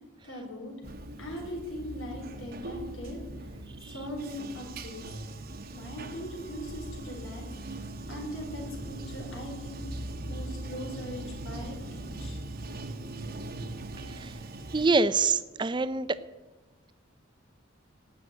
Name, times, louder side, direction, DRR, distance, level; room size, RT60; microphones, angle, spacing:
voice 1, 0.2-0.8 1.2-3.5 3.9-5.1 5.7-12.4 15.7-15.8, left 1 dB, 80° left, 1 dB, 4.6 m, -40 dB
Bathtub (filling or washing), 0.8-14.9, right 2 dB, 50° right, 1.1 m, -40 dB
voice 2, 14.7-16.1, right 4 dB, 25° right, 14 dB, 0.5 m, -26 dB
18.5 x 6.5 x 9.0 m, 1.2 s
head